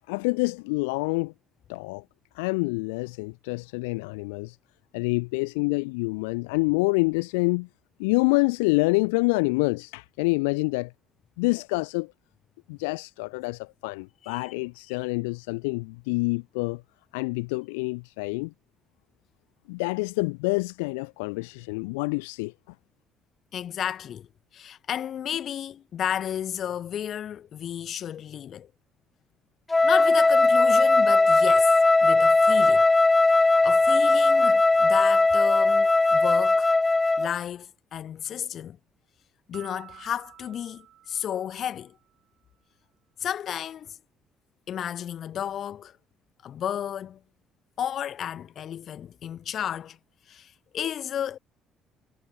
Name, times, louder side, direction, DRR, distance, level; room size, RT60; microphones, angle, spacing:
voice 1, 0.1-1.3 1.7-2.0 2.3-4.6 4.9-7.7 8.0-10.9 11.4-12.1 12.7-16.8 17.1-18.5 19.7-22.5, left 28 dB, 80° left, 0.8 m, -27 dB
voice 2, 14.2-14.5 23.5-28.7 29.8-31.8 32.0-32.9 33.3-36.7 37.2-38.8 39.5-42.0 43.2-44.0 44.7-46.0 46.4-47.2 47.8-50.0 50.3-51.4, left 9 dB, 55° left, 1.8 m, -33 dB
Wind instrument woodwind instrument, 29.7-37.3, left 3 dB, 20° left, 0.5 m, -19 dB
Piano, 39.5-42.1, right 12 dB, 60° right, 4.5 m, -51 dB
hypercardioid pair, 55°, 0 cm